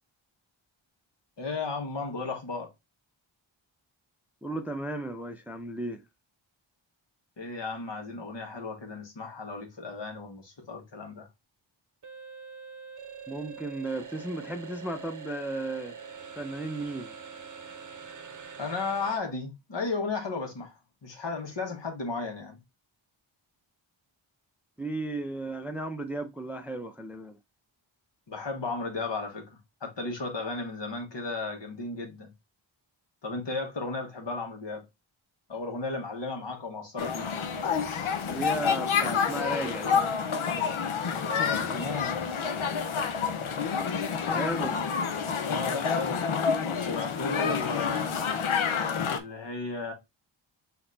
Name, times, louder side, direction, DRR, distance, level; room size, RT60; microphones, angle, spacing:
voice 1, 1.4-2.7 7.4-11.3 18.6-22.6 28.3-32.3 33.2-34.8 35.5-37.3 41.3-42.5 45.4-46.3 46.6-48.1 49.1-49.9, left 3 dB, 60° left, 1.6 m, -35 dB
voice 2, 4.4-6.0 13.3-16.0 16.4-17.1 24.8-27.4 38.3-40.0 44.3-44.8, right 1 dB, 5° right, 0.4 m, -34 dB
sound 1, 12.0-19.2, right 6 dB, 40° right, 0.8 m, -44 dB
sound 2, 37.0-49.2, left 6 dB, 80° left, 0.8 m, -28 dB
4.1 x 2.9 x 3.8 m
wide cardioid pair, 80°, 48 cm